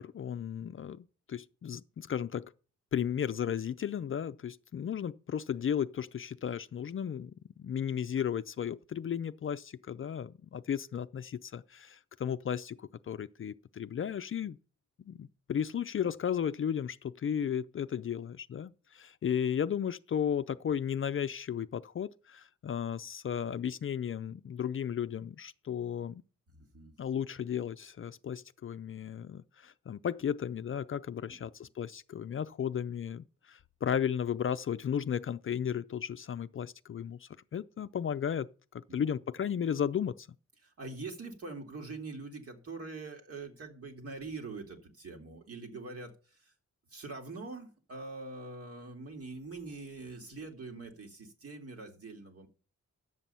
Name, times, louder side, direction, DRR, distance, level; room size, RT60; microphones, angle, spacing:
voice 1, 0.0-2.5 2.9-14.6 15.1-26.2 27.0-38.5 38.9-40.3, left 8 dB, 45° left, 0.5 m, -34 dB
voice 2, 26.5-26.9 31.2-31.5 38.9-39.0 40.6-46.5 46.9-52.5, right 3 dB, 50° right, 2.5 m, -44 dB
11.0 x 7.6 x 5.5 m
wide cardioid pair, 130°, 30 cm